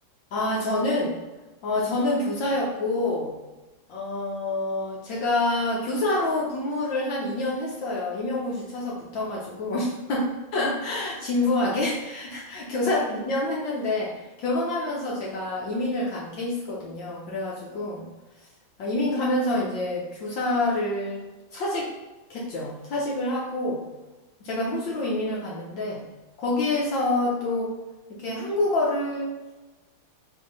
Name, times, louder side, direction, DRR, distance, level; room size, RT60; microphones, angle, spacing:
voice 1, 0.3-1.2 1.6-3.3 3.9-18.0 18.8-21.2 21.5-21.9 22.3-23.8 24.4-26.0 26.4-27.7 28.2-29.5, left 2 dB, 65° left, -4 dB, 1.6 m, -27 dB
6.6 x 2.8 x 5.3 m, 1.2 s
omnidirectional pair, 2.3 m